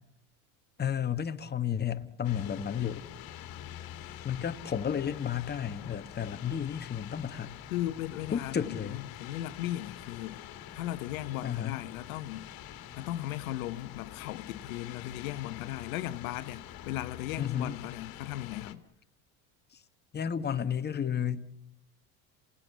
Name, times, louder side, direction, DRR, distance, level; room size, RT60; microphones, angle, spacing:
voice 1, 0.8-3.0 4.2-7.6 8.3-9.1 11.4-11.8 17.4-17.8 20.1-21.4, left 8 dB, 25° left, 1.5 m, -32 dB
sound 1, 2.2-18.7, left 11 dB, 55° left, 2.2 m, -46 dB
voice 2, 7.7-10.4 10.7-12.5 13.0-18.8, left 14 dB, 80° left, 1.1 m, -37 dB
27.5 x 17.5 x 8.2 m
hypercardioid pair, 90°, 41 cm